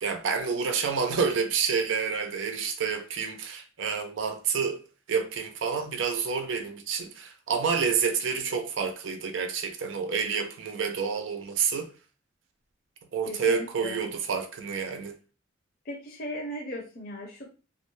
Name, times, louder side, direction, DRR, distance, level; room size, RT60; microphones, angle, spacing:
voice 1, 0.0-4.8 5.1-11.9 13.1-15.2, right 6 dB, 85° right, 0.5 m, -28 dB
voice 2, 13.3-14.0 15.9-17.5, equal, 50° left, 0.5 m, -37 dB
2.3 x 2.1 x 3.0 m
head